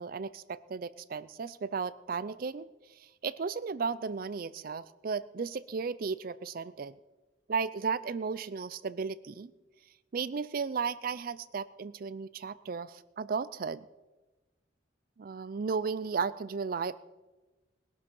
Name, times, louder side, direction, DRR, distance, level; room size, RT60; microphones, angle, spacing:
voice 1, 0.0-6.9 7.5-9.5 10.1-13.8 15.2-16.9, right 5 dB, 50° right, 17 dB, 0.4 m, -35 dB
20.0 x 12.0 x 5.4 m, 1.2 s
head